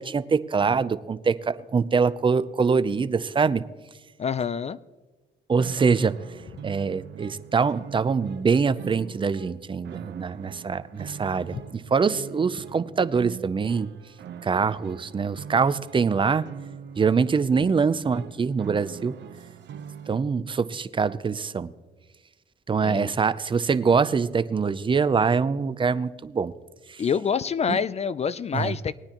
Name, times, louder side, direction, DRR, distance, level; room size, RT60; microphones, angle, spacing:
voice 1, 0.0-3.6 5.5-6.2 6.6-13.9 14.4-16.5 17.0-19.2 20.1-21.7 22.7-26.5 26.9-27.0 27.7-27.8 28.5-28.7, right 5 dB, 25° right, 0.5 m, -24 dB
voice 2, 4.2-4.8 11.5-11.6 22.8-23.1 27.0-29.0, left 6 dB, 35° left, 0.4 m, -26 dB
sound 1, 5.6-20.2, right 8 dB, 60° right, 0.7 m, -42 dB
19.5 x 9.5 x 2.9 m
cardioid pair, 90°, 20 cm